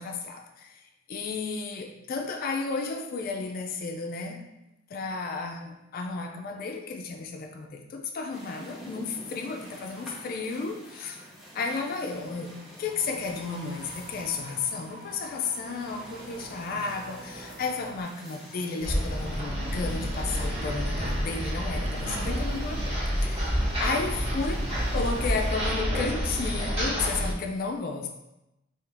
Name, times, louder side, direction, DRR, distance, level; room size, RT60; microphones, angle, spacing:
voice 1, 0.0-4.5 4.9-11.2 11.5-24.6 24.9-28.1, left 4 dB, 45° left, 3 dB, 0.3 m, -33 dB
sound 1, 8.3-25.8, equal, ahead, 0.7 m, -48 dB
sound 2, 12.8-18.0, right 1 dB, 50° right, 0.4 m, -47 dB
sound 3, 18.8-27.3, equal, 30° right, 1.0 m, -29 dB
3.4 x 2.8 x 3.3 m, 0.93 s
head